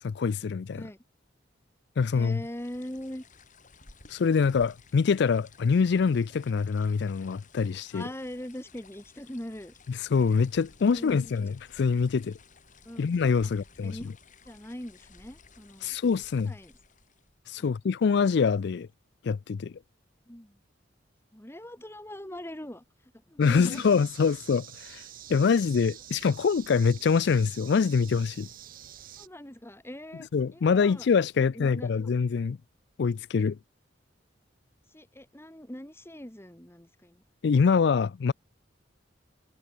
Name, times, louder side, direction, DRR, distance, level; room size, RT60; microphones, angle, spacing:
voice 1, 0.0-0.8 2.0-2.4 4.1-8.0 10.0-12.4 13.0-14.0 15.8-16.5 17.5-18.9 19.2-19.7 23.4-28.5 30.3-32.6 33.0-33.6 37.4-38.3, left 5 dB, 65° left, 0.4 m, -25 dB
sound 1, 2.0-17.4, left 4 dB, 45° left, 4.9 m, -56 dB
voice 2, 2.1-3.3 7.9-9.7 10.9-11.5 12.9-13.1 13.4-13.5 13.8-14.1 14.4-16.0 16.4-16.7 17.6-17.7 20.3-20.6 21.3-22.8 23.3-23.9 29.2-31.1 31.5-31.9 34.9-37.2, left 1 dB, 15° left, 2.3 m, -41 dB
sound 2, 23.4-29.3, right 11 dB, 50° right, 0.8 m, -47 dB
head